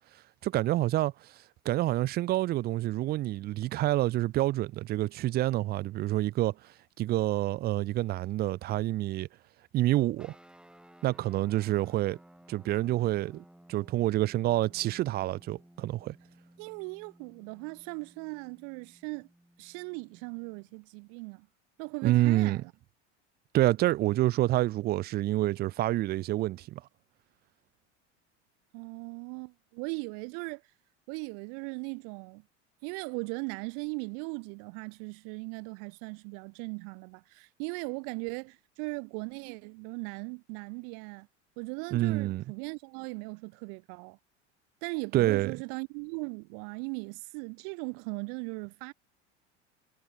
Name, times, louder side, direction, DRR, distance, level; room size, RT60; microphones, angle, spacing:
voice 1, 0.4-1.1 1.7-6.5 7.0-9.3 9.7-10.3 11.0-12.2 12.5-13.4 13.7-16.2 22.0-22.6 23.5-26.8 41.9-42.4 45.1-45.5, right 15 dB, 30° right, 0.3 m, -27 dB
sound 1, 10.2-20.8, right 1 dB, 5° right, 2.5 m, -58 dB
voice 2, 16.6-19.3 19.6-21.5 21.8-22.7 28.7-30.6 31.1-32.4 32.8-41.3 41.6-44.2 44.8-48.9, right 40 dB or more, 60° right, 2.8 m, -38 dB
hypercardioid pair, 85°, 35 cm